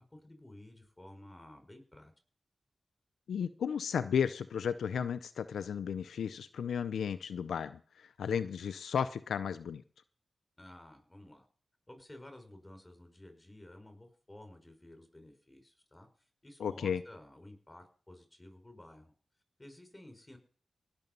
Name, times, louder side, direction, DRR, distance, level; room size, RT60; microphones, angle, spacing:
voice 1, 0.1-2.1 10.6-11.4 11.9-16.1 16.4-19.1 19.6-20.4, left 1 dB, 20° left, 7 dB, 5.3 m, -53 dB
voice 2, 3.3-9.8 16.6-17.0, left 7 dB, 90° left, 12 dB, 0.5 m, -34 dB
18.5 x 6.9 x 5.4 m, 0.44 s
cardioid pair, 45°, 0 cm